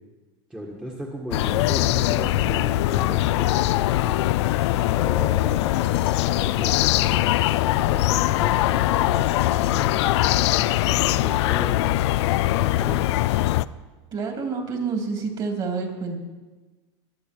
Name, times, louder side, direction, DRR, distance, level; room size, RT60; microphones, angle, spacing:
voice 1, 0.5-5.4 6.2-12.0 12.5-13.1, right 1 dB, 5° right, -2 dB, 1.6 m, -37 dB
sound 1, 1.3-13.7, left 15 dB, 75° left, 0.4 m, -21 dB
sound 2, 2.3-13.7, left 4 dB, 15° left, 1.1 m, -43 dB
voice 2, 14.1-16.2, right 4 dB, 30° right, 2 dB, 2.9 m, -28 dB
21.5 x 8.3 x 4.6 m, 1.2 s
supercardioid pair, 130°, 14 cm